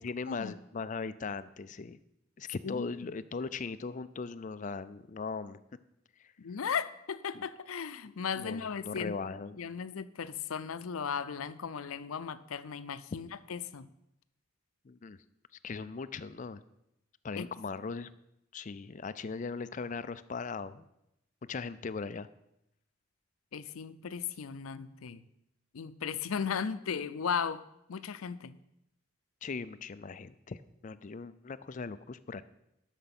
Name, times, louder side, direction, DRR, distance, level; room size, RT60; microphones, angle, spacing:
voice 1, 0.0-2.0 2.4-5.6 6.2-6.3 7.3-7.5 8.0-9.6 14.9-15.2 15.6-16.6 17.2-18.1 18.5-20.9 21.5-22.3 29.4-32.4, left 4 dB, 35° left, 14 dB, 0.4 m, -39 dB
voice 2, 2.6-3.1 6.4-9.2 9.6-13.9 17.3-17.5 23.5-25.2 25.7-27.6 27.9-28.6, left 6 dB, 85° left, 14 dB, 0.5 m, -36 dB
11.5 x 6.6 x 6.0 m, 0.84 s
head